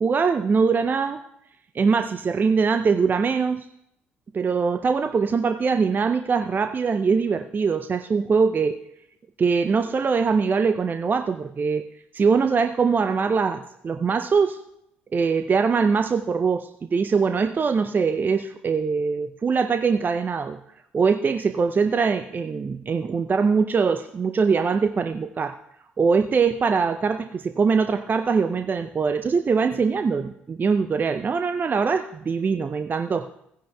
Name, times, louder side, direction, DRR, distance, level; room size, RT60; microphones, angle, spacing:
voice 1, 0.0-1.2 1.7-3.7 4.3-8.8 9.4-11.9 12.2-14.6 15.1-20.6 20.9-25.5 26.0-33.3, right 5 dB, 35° right, 8 dB, 0.5 m, -22 dB
16.0 x 10.0 x 2.3 m, 0.78 s
figure-of-eight pair, 45°, 6 cm